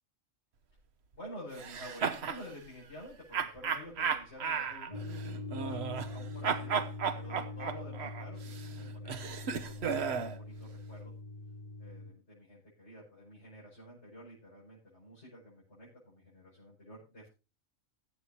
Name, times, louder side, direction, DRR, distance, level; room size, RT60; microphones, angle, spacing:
voice 1, 1.1-5.2 5.5-6.8 7.1-9.4 9.7-11.1 11.8-17.3, equal, 55° left, -7 dB, 7.1 m, -50 dB
sound 1, 1.6-2.4 3.3-6.2 6.4-10.4, right 6 dB, 55° right, 1.1 m, -34 dB
sound 2, 4.9-12.1, left 2 dB, 30° left, 5.6 m, -43 dB
21.5 x 8.4 x 2.8 m, 0.29 s
omnidirectional pair, 1.4 m